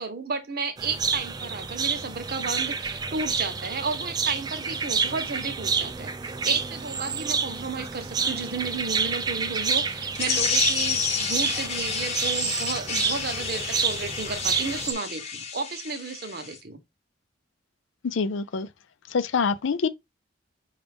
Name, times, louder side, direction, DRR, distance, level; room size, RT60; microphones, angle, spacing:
voice 1, 0.0-16.8, right 4 dB, 55° right, 0.9 m, -33 dB
sound 1, 0.8-14.9, right 5 dB, 20° right, 0.3 m, -29 dB
sound 2, 10.1-16.6, left 6 dB, 35° left, 0.9 m, -30 dB
voice 2, 18.0-18.7 19.1-19.9, left 5 dB, 80° left, 0.5 m, -25 dB
5.1 x 2.4 x 3.4 m
head